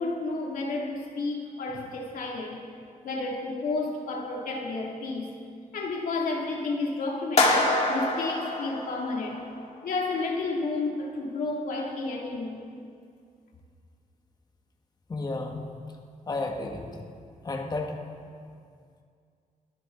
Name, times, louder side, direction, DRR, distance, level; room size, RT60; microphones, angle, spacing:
voice 1, 0.0-2.6 3.0-5.3 5.7-9.4 9.8-12.6, left 3 dB, 85° left, -1 dB, 2.5 m, -31 dB
sound 1, 7.4-9.6, left 2 dB, 50° left, 2.2 m, -25 dB
voice 2, 15.1-15.7 16.3-17.1 17.4-18.0, left 2 dB, 30° left, 1 dB, 1.4 m, -32 dB
21.5 x 12.5 x 3.9 m, 2.3 s
wide cardioid pair, 130°, 14 cm